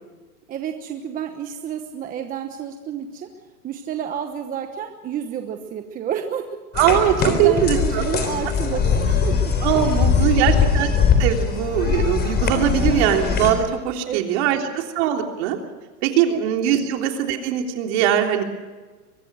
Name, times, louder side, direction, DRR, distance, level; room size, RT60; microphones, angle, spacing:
voice 1, 0.5-3.3 3.6-6.6 6.9-9.4 9.8-10.6 14.1-14.6 16.3-16.4, right 8 dB, 20° right, 6 dB, 1.1 m, -30 dB
sound 1, 6.7-13.5, left 6 dB, 20° left, 3.8 m, -21 dB
voice 2, 6.8-7.1 7.4-8.0 9.6-10.9 11.2-15.6 16.0-18.4, right 10 dB, 45° right, 3 dB, 3.5 m, -21 dB
23.5 x 21.0 x 6.3 m, 1.3 s
supercardioid pair, 145°, 45 cm